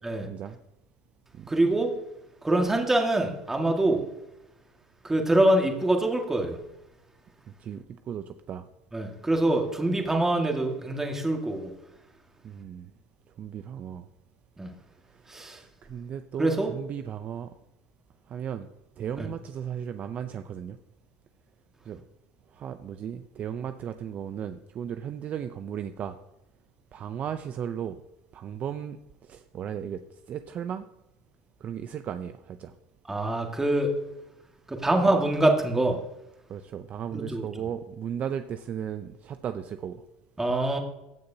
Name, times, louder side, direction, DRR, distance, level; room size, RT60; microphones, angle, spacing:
voice 1, 0.2-0.6 1.3-1.5 7.6-8.6 12.4-12.9 13.4-14.1 15.3-17.5 18.3-18.7 19.0-20.8 21.8-22.0 22.5-26.2 26.9-28.0 28.3-29.0 29.3-30.0 30.3-30.8 31.6-32.7 36.5-40.0, right 8 dB, 40° right, 9 dB, 0.5 m, -35 dB
voice 2, 1.5-1.9 2.4-4.0 5.0-6.6 8.9-11.7 14.6-14.7 15.3-15.6 16.4-16.7 19.2-19.3 33.1-33.9 34.7-36.0 37.1-37.5 40.4-40.8, right 1 dB, 10° right, 2 dB, 1.8 m, -24 dB
15.0 x 6.6 x 2.8 m, 0.91 s
supercardioid pair, 100°, 4 cm